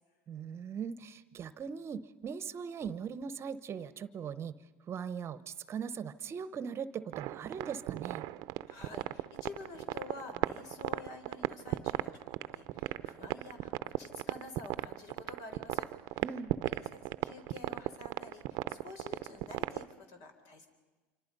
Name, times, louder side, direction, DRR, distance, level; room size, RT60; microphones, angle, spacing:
voice 1, 0.3-4.5 4.9-8.3 16.2-16.5, right 7 dB, 35° right, 15 dB, 0.9 m, -40 dB
sound 1, 7.1-19.9, right 17 dB, 60° right, 0.7 m, -36 dB
voice 2, 8.7-16.3 16.6-20.7, left 3 dB, 60° left, 7 dB, 4.3 m, -49 dB
26.5 x 25.5 x 5.4 m, 1.3 s
supercardioid pair, 95°, 7 cm